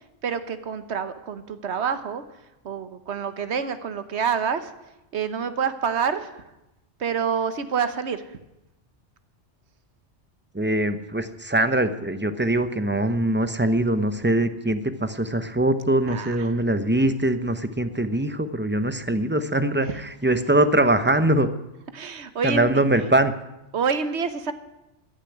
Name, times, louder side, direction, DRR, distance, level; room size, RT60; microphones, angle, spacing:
voice 1, 0.2-2.2 2.6-4.7 5.1-6.3 7.0-8.2 16.1-16.4 19.8-19.9 21.9-22.7 23.7-24.5, right 6 dB, 70° right, 11 dB, 1.3 m, -27 dB
voice 2, 10.5-21.5 22.4-23.3, right 1 dB, 10° right, 10 dB, 0.7 m, -22 dB
15.0 x 7.0 x 9.9 m, 0.94 s
omnidirectional pair, 1.2 m